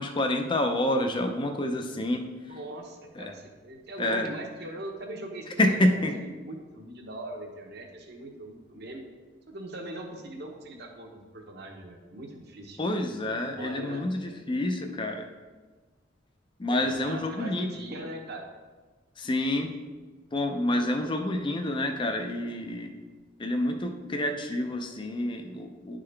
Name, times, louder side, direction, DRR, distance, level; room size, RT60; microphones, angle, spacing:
voice 1, 0.0-2.2 3.2-3.3 4.0-4.3 5.6-6.1 12.8-15.3 16.6-17.7 19.2-19.7 20.3-22.9 23.4-26.0, left 1 dB, 25° left, 4 dB, 0.5 m, -28 dB
voice 2, 2.4-9.1 9.5-12.8 13.2-14.0 16.7-18.5, right 1 dB, 60° right, 1 dB, 1.0 m, -41 dB
10.5 x 3.8 x 3.3 m, 1.3 s
head